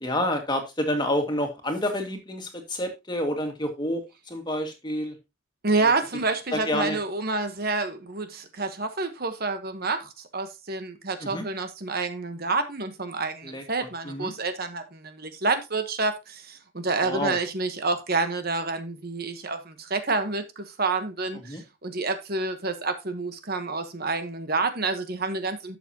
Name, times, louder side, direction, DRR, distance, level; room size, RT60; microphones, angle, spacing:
voice 1, 0.0-5.2 5.8-5.9 6.5-7.0 11.2-11.5 13.4-14.3 17.0-17.4 21.5-21.6, left 1 dB, 20° left, 2.0 m, -29 dB
voice 2, 5.6-25.8, right 3 dB, 45° right, 1.2 m, -28 dB
12.0 x 7.1 x 2.9 m
head